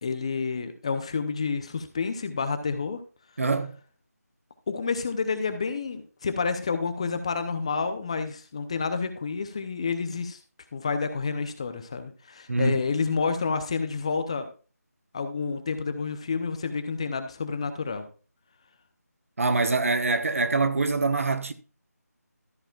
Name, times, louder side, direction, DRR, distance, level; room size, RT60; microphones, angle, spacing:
voice 1, 0.0-3.0 4.7-10.4 10.7-14.5 15.1-18.0, left 5 dB, 20° left, 0.6 m, -29 dB
voice 2, 3.4-3.8 12.5-12.8 19.4-21.5, right 3 dB, 55° right, 1.1 m, -24 dB
13.0 x 8.7 x 2.4 m
figure-of-eight pair, 165°, 9 cm